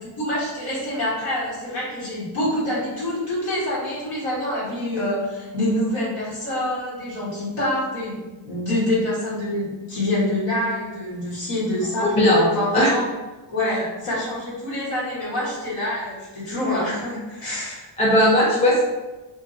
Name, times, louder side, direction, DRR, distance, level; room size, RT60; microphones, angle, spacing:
voice 1, 0.0-8.2 8.4-12.1 12.5-13.1 13.5-17.9, left 1 dB, 90° left, -8 dB, 1.3 m, -26 dB
voice 2, 12.0-12.5 12.7-12.9 18.0-18.8, equal, 15° left, -6 dB, 0.6 m, -17 dB
2.7 x 2.4 x 2.5 m, 1.2 s
cardioid pair, 85°, 45 cm